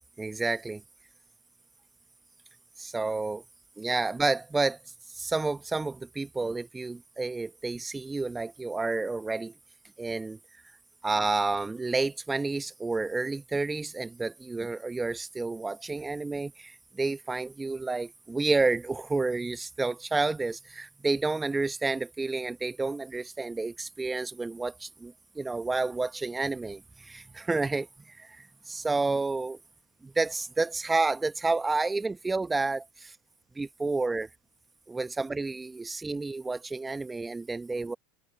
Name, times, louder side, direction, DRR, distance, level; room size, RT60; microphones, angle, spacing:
voice 1, 0.2-0.8 2.8-3.4 3.8-4.8 5.1-9.5 10.0-10.4 11.0-29.6 30.0-33.1 33.6-34.3 34.9-38.0, right 3 dB, 15° right, 1.2 m, -30 dB
hypercardioid pair, 85°, 0 cm